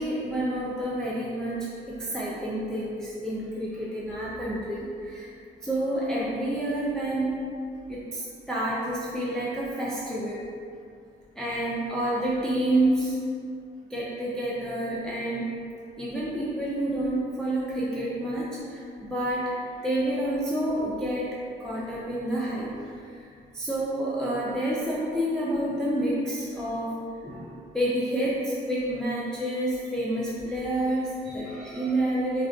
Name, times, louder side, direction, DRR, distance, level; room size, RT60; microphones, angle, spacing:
voice 1, 0.0-5.3 5.6-7.4 7.9-10.5 11.4-13.2 13.9-15.5 16.0-19.6 19.8-22.8 23.1-23.3 23.5-26.9 27.2-32.5, right 1 dB, 5° left, -7 dB, 0.4 m, -29 dB
2.4 x 2.3 x 2.4 m, 2.4 s
cardioid pair, 90°, 20 cm